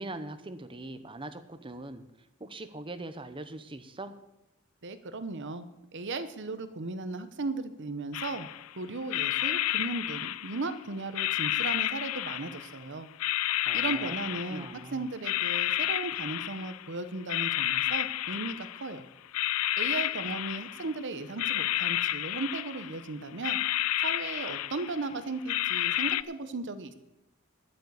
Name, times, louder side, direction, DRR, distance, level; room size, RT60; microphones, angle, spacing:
voice 1, 0.0-2.0 2.4-4.1 13.7-14.2 14.5-15.0, right 2 dB, 25° right, 10 dB, 0.9 m, -41 dB
voice 2, 4.8-5.7 5.9-8.5 8.8-13.1 13.7-19.1 19.8-23.6 24.0-26.9, right 3 dB, 60° right, 11 dB, 0.9 m, -36 dB
sound 1, 8.1-8.7 9.1-10.8 11.2-12.8 13.2-14.8 15.2-16.9 17.3-19.0 19.3-21.0 21.4-23.0 23.4-25.1 25.5-26.2, left 14 dB, 80° left, 0.4 m, -31 dB
11.0 x 9.0 x 8.1 m, 0.94 s
head